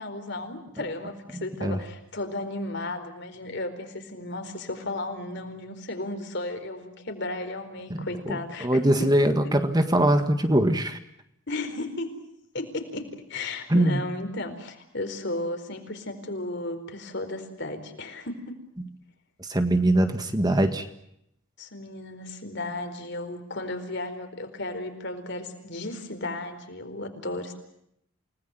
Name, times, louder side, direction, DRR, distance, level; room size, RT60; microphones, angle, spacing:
voice 1, 0.0-9.6 11.5-12.1 12.5-18.6 21.6-27.5, left 2 dB, 60° left, 7 dB, 4.5 m, -34 dB
voice 2, 1.3-1.8 7.9-11.0 13.7-14.0 19.4-20.8, right 1 dB, 20° right, 7 dB, 1.7 m, -22 dB
29.0 x 19.5 x 9.3 m, 0.78 s
head